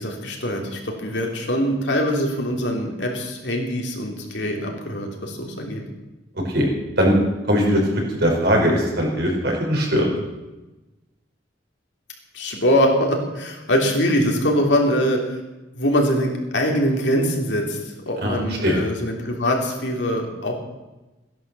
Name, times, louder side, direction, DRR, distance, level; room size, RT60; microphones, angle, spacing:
voice 1, 0.0-5.8 12.3-15.4 15.7-17.8 18.1-20.5, equal, 70° left, 1 dB, 3.3 m, -23 dB
voice 2, 7.5-10.1 18.2-18.8, equal, 60° right, 0 dB, 4.7 m, -20 dB
15.5 x 11.0 x 6.9 m, 1.1 s
head